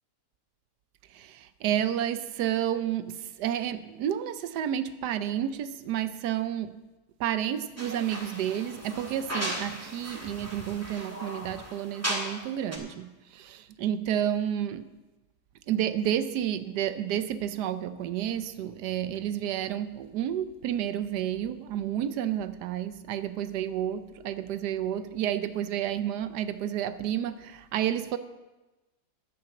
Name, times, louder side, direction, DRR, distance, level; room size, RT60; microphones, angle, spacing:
voice 1, 1.1-6.8 7.2-14.9 15.7-28.2, right 10 dB, 90° right, 1.3 m, -30 dB
sound 1, 7.8-12.5 12.7-12.8, equal, 10° right, 1.7 m, -36 dB
10.5 x 8.8 x 7.0 m
omnidirectional pair, 1.7 m